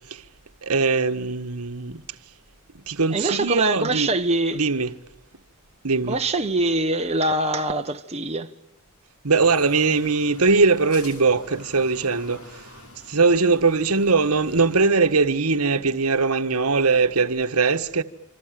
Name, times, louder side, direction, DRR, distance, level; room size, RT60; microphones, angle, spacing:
voice 1, 0.6-2.0 2.9-4.1 4.5-4.9 5.8-6.2 9.2-12.4 13.1-18.0, right 4 dB, 75° right, 1.5 m, -21 dB
voice 2, 3.1-4.6 6.1-8.5, right 2 dB, 30° right, 1.3 m, -23 dB
sound 1, 9.3-15.0, left 2 dB, 80° left, 5.4 m, -46 dB
27.5 x 26.5 x 7.7 m
head